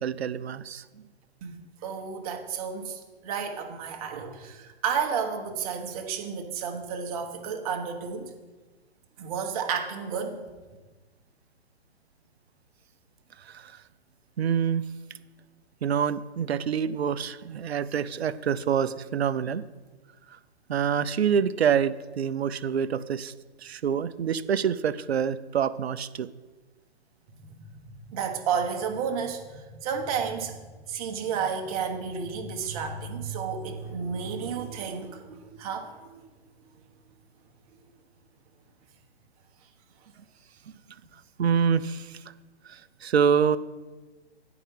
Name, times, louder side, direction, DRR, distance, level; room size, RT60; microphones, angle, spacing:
voice 1, 0.0-0.8 13.5-13.7 14.4-14.9 15.8-19.6 20.7-23.3 23.6-26.3 41.4-42.2 42.7-43.6, right 7 dB, 70° right, 15 dB, 0.6 m, -26 dB
voice 2, 1.4-8.3 9.2-10.4 28.1-30.6 30.9-36.2, right 6 dB, 35° right, 4 dB, 1.2 m, -32 dB
9.8 x 4.8 x 5.5 m, 1.3 s
figure-of-eight pair, 125°, 33 cm